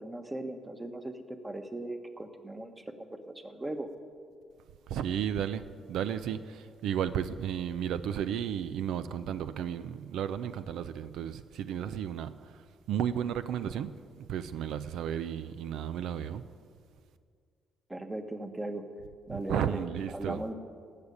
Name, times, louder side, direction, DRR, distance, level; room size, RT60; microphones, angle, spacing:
voice 1, 0.0-3.9 17.9-18.9 19.3-19.8 20.1-20.5, right 1 dB, 15° right, 7 dB, 1.3 m, -38 dB
voice 2, 4.9-5.6 5.9-16.4 19.3-20.4, right 9 dB, 80° right, 12 dB, 0.5 m, -33 dB
15.0 x 6.7 x 10.0 m, 2.2 s
cardioid pair, 90°, 0 cm